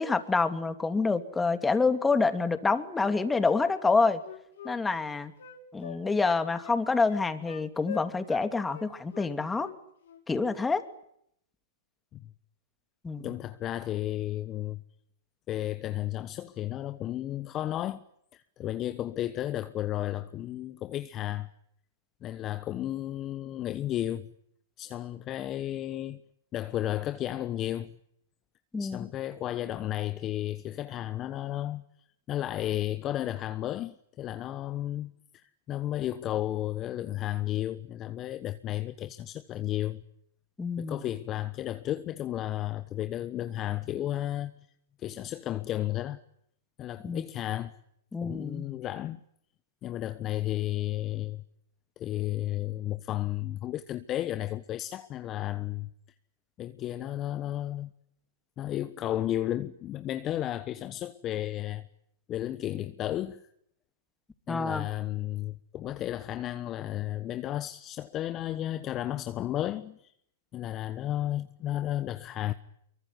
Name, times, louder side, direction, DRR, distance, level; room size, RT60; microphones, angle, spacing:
voice 1, 0.0-4.2 4.6-5.3 5.7-9.7 10.3-10.8 13.0-13.4 28.7-29.0 40.6-41.1 47.0-47.2 48.1-48.7 64.5-64.9, left 4 dB, 10° left, 2.8 m, -27 dB
Wind instrument woodwind instrument, 3.8-8.4 8.7-9.8 10.0-10.2, left 10 dB, 70° left, 5.2 m, -44 dB
voice 2, 13.2-14.8 15.5-18.0 18.3-21.5 22.2-24.3 24.8-26.2 26.5-27.9 28.8-31.8 32.3-40.0 40.8-44.5 45.0-46.2 46.8-47.8 48.2-49.2 49.8-51.4 52.0-55.9 56.6-57.9 58.6-61.9 62.3-63.4 64.5-70.1 70.5-72.5, left 13 dB, 30° left, 1.2 m, -33 dB
25.0 x 23.5 x 9.4 m
hypercardioid pair, 120°, 0 cm